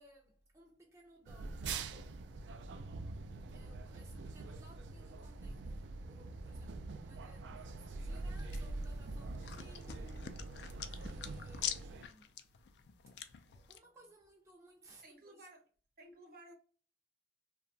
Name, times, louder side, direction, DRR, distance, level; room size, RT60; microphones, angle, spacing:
voice 1, 0.0-2.1 3.5-10.5 10.8-12.5 13.5-15.5, right 2 dB, 15° right, 0.4 m, -62 dB
sound 1, 1.3-12.1, right 3 dB, 90° right, 0.3 m, -44 dB
voice 2, 3.6-4.1 13.8-14.0 15.0-15.6 16.0-16.5, right 1 dB, 55° right, 0.7 m, -58 dB
sound 2, 8.1-13.8, left 9 dB, 70° left, 0.3 m, -46 dB
2.8 x 2.2 x 2.6 m
head